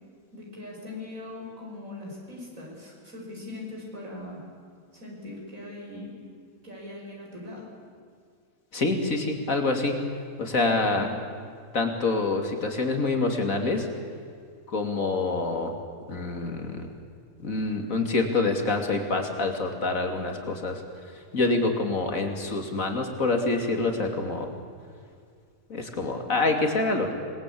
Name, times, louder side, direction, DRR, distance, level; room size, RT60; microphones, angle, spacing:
voice 1, 0.3-4.4 4.9-6.2 6.6-7.7 10.6-11.2, left 2 dB, 65° right, -2 dB, 6.2 m, -40 dB
voice 2, 8.7-10.0 10.4-11.1 11.7-13.9 14.7-15.7 16.1-16.9 17.4-20.8 21.3-24.5 25.7-27.1, left 3 dB, 65° left, 4 dB, 3.2 m, -26 dB
27.0 x 20.5 x 8.7 m, 2.2 s
omnidirectional pair, 1.5 m